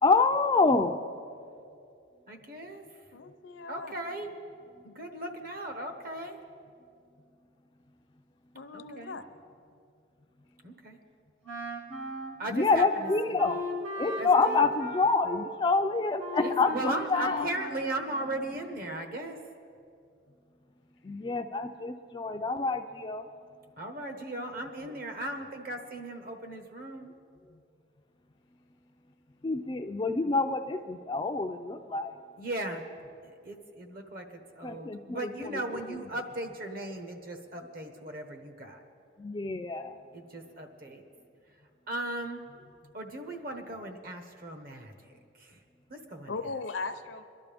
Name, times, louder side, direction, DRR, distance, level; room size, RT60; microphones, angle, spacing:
voice 1, 0.0-1.0 12.5-13.6 14.0-17.4 21.0-23.2 29.4-32.1 34.6-35.3 39.2-39.9, left 3 dB, 25° left, 5 dB, 0.4 m, -27 dB
voice 2, 2.3-2.8 3.7-4.3 4.8-6.4 8.7-9.2 10.6-11.0 12.4-13.3 14.2-14.7 16.4-19.4 23.8-27.1 32.4-32.8 33.2-38.8 40.1-41.0 41.9-42.4 42.9-45.6 45.9-46.3, right 1 dB, 50° right, 5 dB, 1.2 m, -37 dB
voice 3, 3.1-3.9 8.5-9.2 46.3-47.2, left 3 dB, 70° left, 9 dB, 0.6 m, -38 dB
Wind instrument woodwind instrument, 11.4-18.7, equal, 80° right, 2.0 m, -38 dB
22.0 x 12.0 x 3.5 m, 2.5 s
head